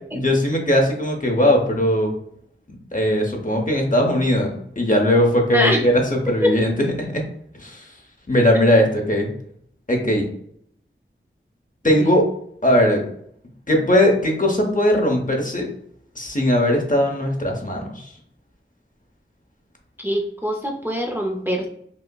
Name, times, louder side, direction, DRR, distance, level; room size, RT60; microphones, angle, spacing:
voice 1, 0.1-2.1 2.7-4.5 4.8-7.2 7.6-7.8 8.3-9.3 9.9-10.3 11.8-12.2 12.6-13.0 13.7-15.7 16.2-18.1, left 1 dB, 40° left, 1 dB, 0.9 m, -19 dB
voice 2, 20.0-21.7, equal, 10° right, 1 dB, 0.5 m, -23 dB
5.3 x 2.1 x 2.3 m, 0.68 s
wide cardioid pair, 45°, 21 cm